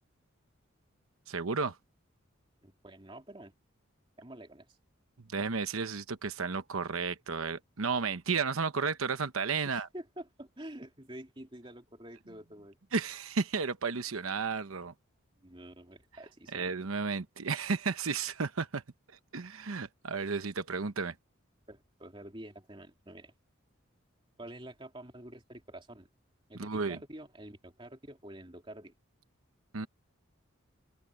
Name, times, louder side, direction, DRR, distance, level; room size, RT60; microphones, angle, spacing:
voice 1, 1.3-1.8 5.3-9.9 12.9-14.9 16.5-18.8 19.3-21.1 26.6-27.0 29.7-29.9, right 5 dB, 90° right, 1.0 m, -33 dB
voice 2, 2.6-3.5 4.2-4.8 9.6-12.8 15.4-16.7 21.7-23.3 24.4-26.1 26.5-28.9, right 1 dB, 25° right, 3.1 m, -48 dB
head